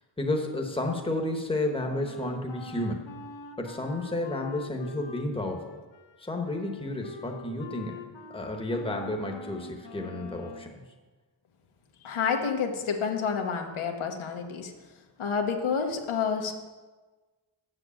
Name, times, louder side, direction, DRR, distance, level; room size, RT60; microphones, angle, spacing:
voice 1, 0.2-3.1 3.6-5.6 6.2-8.0 8.3-10.8, left 1 dB, 10° left, 2 dB, 1.1 m, -31 dB
Wind instrument woodwind instrument, 1.9-10.7, left 4 dB, 65° left, 1.0 m, -45 dB
voice 2, 12.0-14.7 15.2-16.5, left 6 dB, 90° left, 4 dB, 1.3 m, -29 dB
7.8 x 7.6 x 7.0 m, 1.3 s
wide cardioid pair, 145°, 48 cm